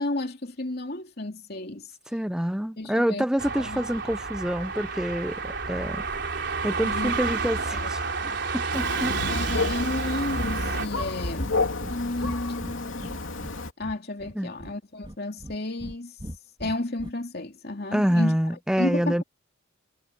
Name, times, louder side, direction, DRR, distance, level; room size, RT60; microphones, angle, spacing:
voice 1, 0.0-1.9 2.8-3.3 3.6-3.8 6.8-7.1 7.7-7.9 8.2-8.4 9.3-13.2 13.8-16.2 16.6-18.4 18.8-19.2, left 2 dB, 50° left, 2.9 m, -32 dB
voice 2, 2.1-6.0 6.6-8.0 8.5-9.2 9.5-9.7 14.3-14.5 17.9-19.2, equal, 5° right, 0.5 m, -27 dB
sound 1, 3.4-10.9, right 4 dB, 60° right, 4.3 m, -30 dB
Thunder, 8.7-13.7, left 3 dB, 85° left, 2.8 m, -30 dB
Breathing, 10.9-11.1 11.4-11.5 11.8-11.9 12.2-13.6 13.8-14.7 15.0-15.9 16.2-17.1, equal, 25° right, 3.4 m, -39 dB
head